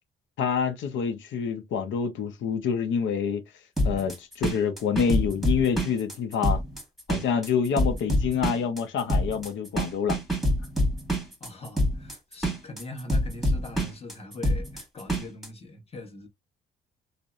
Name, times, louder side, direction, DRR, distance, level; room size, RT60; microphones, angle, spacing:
voice 1, 0.4-3.4 3.8-6.6 7.1-10.2, left 7 dB, 75° left, 0.6 m, -27 dB
sound 1, 3.8-15.5, equal, ahead, 1.3 m, -26 dB
voice 2, 11.4-16.3, left 2 dB, 30° left, 1.1 m, -42 dB
2.6 x 2.1 x 2.3 m
cardioid pair, 90°, 20 cm